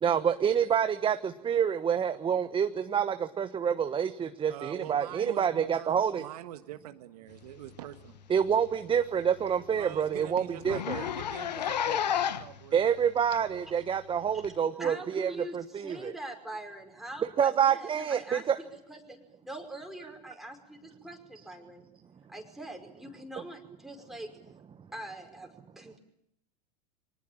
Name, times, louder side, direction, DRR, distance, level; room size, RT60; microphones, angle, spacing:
voice 1, 0.0-6.2 8.3-11.0 12.7-16.2 17.4-18.6, right 8 dB, 25° right, 10 dB, 1.2 m, -27 dB
voice 2, 4.5-8.2 9.8-12.9, right 12 dB, 65° right, 9 dB, 1.5 m, -44 dB
Zipper (clothing), 8.0-8.2 8.5-8.6 9.0-9.1 9.5-9.6 9.8-10.0 10.6-12.6 13.3-13.4 14.4-14.5, left 9 dB, 75° left, 1.2 m, -31 dB
voice 3, 14.8-21.9 22.3-24.3 24.9-25.5 25.8-26.0, right 1 dB, ahead, 2 dB, 5.4 m, -43 dB
25.0 x 19.5 x 9.0 m, 0.76 s
hypercardioid pair, 85°, 21 cm